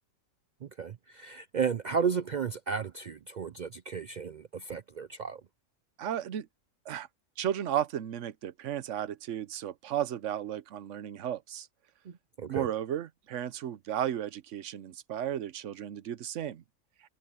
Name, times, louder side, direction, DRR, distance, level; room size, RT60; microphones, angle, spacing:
voice 1, 0.8-5.4 12.4-12.7, right 6 dB, 80° right, 0.4 m, -33 dB
voice 2, 6.0-6.5 6.9-7.1 7.4-11.7 12.5-16.6, right 10 dB, 65° right, 1.0 m, -34 dB
omnidirectional pair, 1.5 m